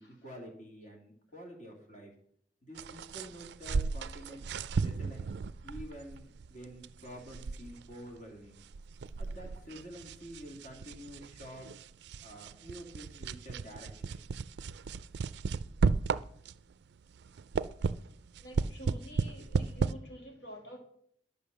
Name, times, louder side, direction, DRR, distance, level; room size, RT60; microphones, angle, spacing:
voice 1, 0.0-2.1 2.6-4.4 4.8-5.3 5.6-8.6 9.2-11.7 12.2-14.2, equal, 45° left, 1 dB, 2.3 m, -48 dB
sound 1, 2.8-16.7 17.1-19.9, right 5 dB, 65° right, 0.4 m, -35 dB
voice 2, 18.4-20.8, equal, 70° left, 3 dB, 2.1 m, -49 dB
11.0 x 5.3 x 6.7 m, 0.68 s
head